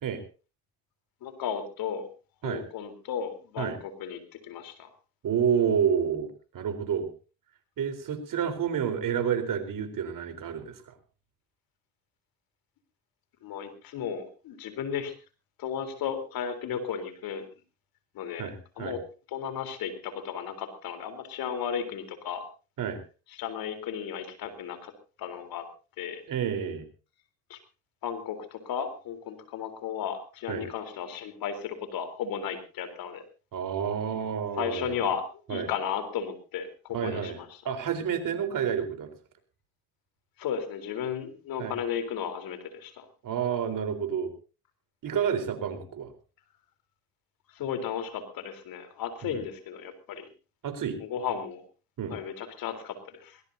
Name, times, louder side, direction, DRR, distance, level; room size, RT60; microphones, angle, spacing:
voice 1, 1.2-2.1 2.4-4.9 13.4-15.1 15.6-17.5 18.1-18.5 18.8-19.0 19.3-22.4 23.3-24.9 25.2-25.6 26.0-26.2 27.5-27.6 28.0-33.2 34.6-37.5 40.4-43.1 47.5-50.3 51.0-51.6 52.1-53.4, left 8 dB, 70° left, 9 dB, 3.7 m, -34 dB
voice 2, 5.2-7.1 7.8-10.9 18.4-19.0 22.8-23.0 26.3-26.8 30.5-30.7 33.5-35.0 35.5-35.7 36.9-37.4 37.6-39.1 41.6-41.7 43.2-44.3 45.0-46.1 49.2-49.4 50.6-51.0 52.0-52.2, right 8 dB, 60° right, 9 dB, 4.0 m, -29 dB
21.0 x 20.0 x 2.7 m, 0.34 s
supercardioid pair, 60°, 36 cm